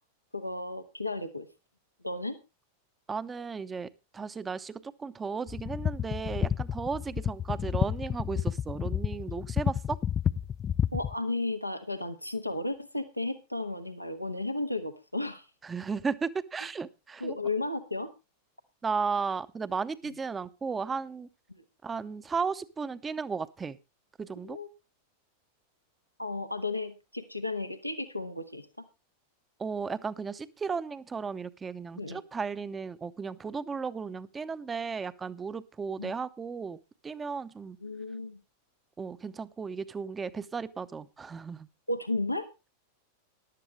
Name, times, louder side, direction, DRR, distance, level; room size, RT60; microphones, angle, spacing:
voice 1, 0.3-1.5 2.0-2.4 9.3-9.4 10.9-15.4 17.2-18.1 24.4-24.7 26.2-28.7 32.0-32.2 36.0-36.1 37.8-38.4 41.9-42.5, left 2 dB, 90° left, 8 dB, 1.3 m, -33 dB
voice 2, 3.1-10.0 15.6-17.4 18.8-21.3 21.8-23.8 24.2-24.6 29.6-36.8 37.0-37.8 39.0-41.7, right 5 dB, 15° right, 15 dB, 0.8 m, -35 dB
sound 1, 5.5-11.1, left 9 dB, 25° left, 0.5 m, -30 dB
14.5 x 11.5 x 3.2 m, 0.28 s
figure-of-eight pair, 90°, 0 cm